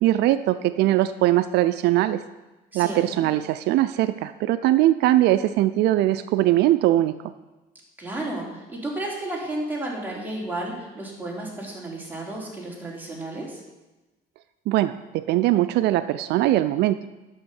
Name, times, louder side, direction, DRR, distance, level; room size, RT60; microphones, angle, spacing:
voice 1, 0.0-2.2 2.7-7.1 14.7-17.0, right 14 dB, 80° right, 12 dB, 0.5 m, -21 dB
voice 2, 2.7-3.3 8.0-13.6, right 1 dB, 10° right, -3 dB, 3.7 m, -32 dB
11.0 x 6.5 x 7.0 m, 1.1 s
cardioid pair, 110°, 17 cm